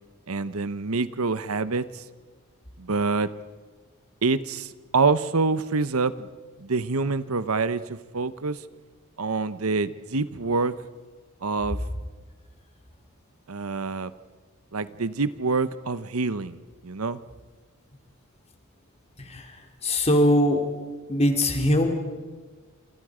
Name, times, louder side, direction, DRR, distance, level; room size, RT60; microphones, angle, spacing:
voice 1, 0.3-2.0 2.8-3.3 4.2-6.3 6.6-8.6 9.2-10.7 11.4-11.8 13.5-14.1 14.7-16.6 16.8-17.2, right 4 dB, 75° right, 14 dB, 1.0 m, -26 dB
voice 2, 19.2-20.6 21.1-21.9, left 1 dB, 30° left, 4 dB, 3.3 m, -22 dB
29.5 x 27.5 x 5.1 m, 1.4 s
head